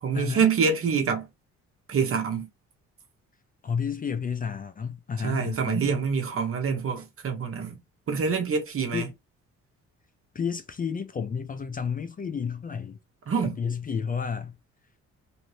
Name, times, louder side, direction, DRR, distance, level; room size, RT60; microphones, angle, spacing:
voice 1, 0.0-1.3 1.9-2.5 5.2-7.8 8.1-9.1 13.3-13.6, right 6 dB, 45° right, 0.9 m, -26 dB
voice 2, 3.6-5.9 8.9-9.0 10.3-13.0 13.4-14.5, left 6 dB, 30° left, 0.4 m, -31 dB
2.7 x 2.7 x 3.1 m
cardioid pair, 90°, 30 cm